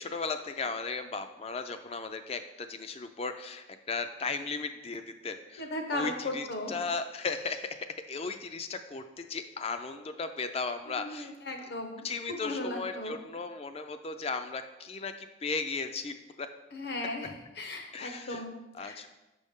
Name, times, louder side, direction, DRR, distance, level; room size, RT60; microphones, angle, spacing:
voice 1, 0.0-11.3 11.6-11.7 12.0-16.5 17.9-18.4 18.7-19.1, left 4 dB, 30° left, 9 dB, 0.4 m, -36 dB
voice 2, 5.6-6.7 10.9-13.1 16.7-19.0, left 1 dB, 55° left, 4 dB, 0.9 m, -37 dB
6.2 x 5.3 x 3.6 m, 1.0 s
head